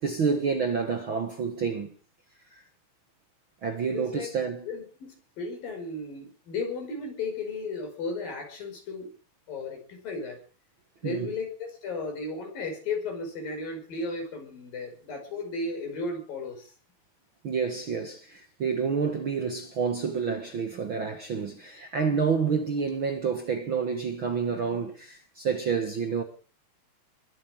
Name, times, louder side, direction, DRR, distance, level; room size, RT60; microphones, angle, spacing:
voice 1, 0.0-1.9 2.5-2.6 3.6-4.7 11.0-11.3 17.4-26.2, right 5 dB, 50° right, 1.6 m, -29 dB
voice 2, 3.9-4.3 4.6-9.1 9.5-10.4 11.0-16.7, left 3 dB, 70° left, 7.2 m, -35 dB
21.5 x 8.8 x 7.4 m
omnidirectional pair, 4.1 m